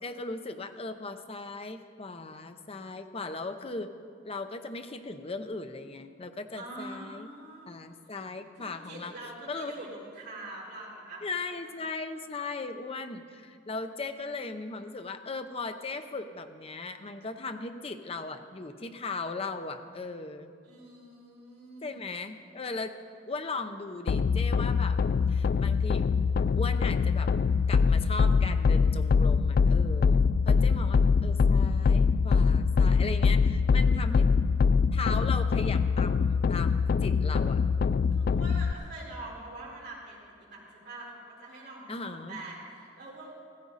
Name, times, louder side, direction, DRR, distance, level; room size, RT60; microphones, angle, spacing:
voice 1, 0.0-3.9 4.2-7.3 7.7-9.7 11.2-20.5 21.8-22.9 23.3-25.0 25.3-26.1 26.5-27.3 27.7-34.3 34.9-37.6 41.9-42.4, left 3 dB, 30° left, 8 dB, 0.7 m, -38 dB
voice 2, 6.5-7.8 8.5-11.2 11.6-11.7 20.6-22.0 38.1-43.3, right 2 dB, 55° right, -6 dB, 4.3 m, -44 dB
sound 1, 24.1-38.7, left 5 dB, 50° left, 0.3 m, -24 dB
15.0 x 14.5 x 4.1 m, 2.2 s
head